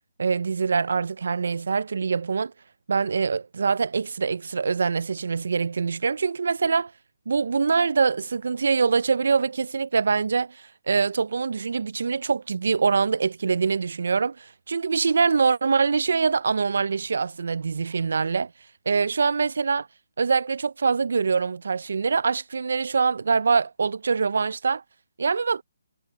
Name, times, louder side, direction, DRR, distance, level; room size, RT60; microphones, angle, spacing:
voice 1, 0.2-2.5 2.9-6.9 7.3-18.5 18.9-19.9 20.2-24.8 25.2-25.6, right 5 dB, 65° right, 0.4 m, -24 dB
hypercardioid pair, 170°, 0 cm